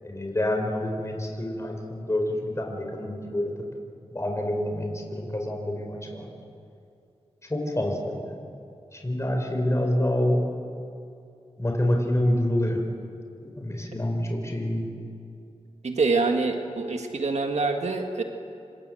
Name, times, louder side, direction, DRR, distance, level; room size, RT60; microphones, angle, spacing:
voice 1, 0.0-3.5 4.1-6.3 7.5-8.3 8.9-10.4 11.6-12.8 13.4-14.9, left 1 dB, 25° left, 2 dB, 4.6 m, -27 dB
voice 2, 15.8-18.2, right 3 dB, 85° right, 4 dB, 1.8 m, -25 dB
27.0 x 25.5 x 7.8 m, 2.5 s
wide cardioid pair, 75°, 11 cm